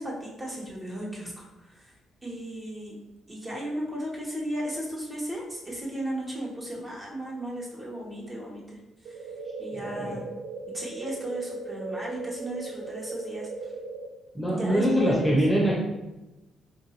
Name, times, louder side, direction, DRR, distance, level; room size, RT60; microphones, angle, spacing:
voice 1, 0.0-1.4 2.2-3.0 3.3-8.6 9.6-10.2 10.7-13.5 14.5-15.3, equal, 25° right, -3 dB, 1.1 m, -35 dB
sound 1, 9.0-14.1, right 3 dB, 80° right, 0.4 m, -37 dB
voice 2, 9.7-10.2 14.3-15.8, equal, 10° left, -3 dB, 0.8 m, -24 dB
4.0 x 2.5 x 2.9 m, 0.99 s
cardioid pair, 90°, 0 cm